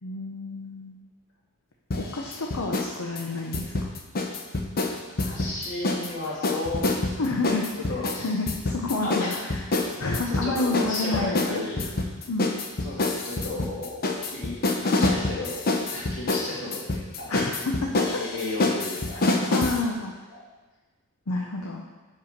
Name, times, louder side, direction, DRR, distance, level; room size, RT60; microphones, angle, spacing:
voice 1, 0.0-1.0 2.0-3.9 7.2-7.7 8.2-9.7 10.0-11.6 12.3-12.5 17.3-18.1 19.2-20.1 21.3-21.9, left 2 dB, 80° left, 0 dB, 0.8 m, -29 dB
sound 1, 1.9-2.9 3.2-6.1 6.4-19.8, left 2 dB, 45° left, 0.8 m, -27 dB
voice 2, 5.2-7.2 7.4-7.6 7.9-8.3 9.0-9.4 10.3-11.8 12.8-14.0 14.3-15.6 15.9-17.3 18.2-19.3 20.3-20.4, left 2 dB, 65° left, -5 dB, 2.5 m, -34 dB
6.9 x 5.4 x 5.1 m, 1.2 s
head